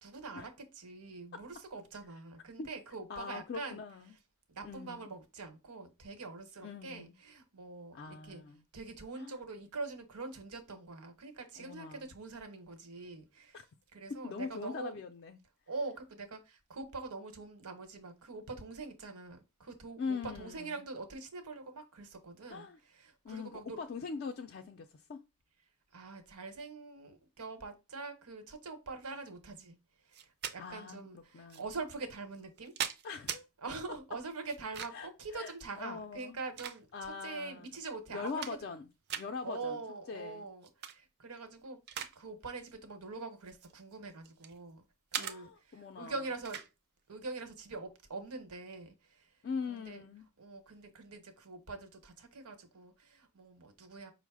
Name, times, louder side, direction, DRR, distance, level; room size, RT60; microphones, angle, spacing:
voice 1, 0.0-3.8 4.5-8.4 8.7-13.6 13.9-15.0 15.7-23.8 25.9-29.8 30.1-32.7 33.6-38.6 39.4-44.8 45.1-46.6 47.1-49.3 49.7-50.0 50.4-54.1, right 3 dB, 85° right, 1.0 m, -44 dB
voice 2, 3.1-4.1 4.6-5.1 6.6-7.2 7.9-8.6 9.2-9.4 11.6-12.1 13.5-13.6 14.1-15.4 20.0-20.8 22.5-22.8 23.2-25.2 30.6-31.6 33.0-33.5 34.9-36.4 36.9-37.7 38.1-38.9 39.2-39.8 40.1-40.5 45.2-46.2 49.4-50.3, left 5 dB, 45° left, 0.3 m, -42 dB
sound 1, 30.1-30.6 31.5-31.6 32.3-33.4 34.5-35.1 36.1-37.2 37.7-37.8 38.1-38.8 39.1-39.3 40.6-41.0 41.4-42.2 42.5-42.7 43.5-44.6 45.1-45.4 46.4-46.7, right 8 dB, 45° right, 0.4 m, -40 dB
5.3 x 2.0 x 4.7 m
head